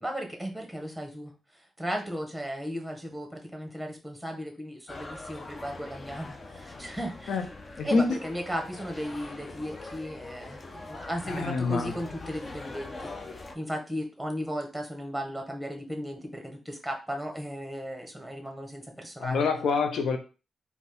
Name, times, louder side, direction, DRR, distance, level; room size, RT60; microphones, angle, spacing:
voice 1, 0.0-7.4 7.8-10.6 10.9-13.1 13.5-19.4, equal, ahead, 3 dB, 1.6 m, -36 dB
sound 1, 4.9-13.6, left 2 dB, 40° left, 0.7 m, -43 dB
voice 2, 7.8-8.2 11.3-11.9 19.2-20.2, left 4 dB, 75° left, 6 dB, 0.6 m, -26 dB
4.1 x 3.0 x 3.9 m, 0.32 s
cardioid pair, 70°, 0 cm